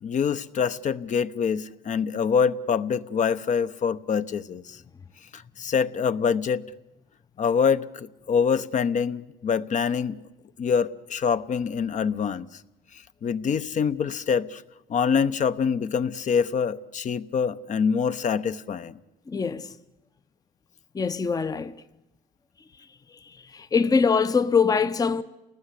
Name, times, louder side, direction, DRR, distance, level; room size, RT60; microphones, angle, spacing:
voice 1, 0.0-4.8 5.3-6.7 7.4-10.2 10.6-12.5 13.2-14.6 14.9-18.9, left 6 dB, 45° left, 1.0 m, -25 dB
voice 2, 19.3-19.7 20.9-21.7 23.5-25.2, left 5 dB, 20° left, 0.8 m, -23 dB
29.0 x 19.0 x 8.4 m
cardioid pair, 110°, 17 cm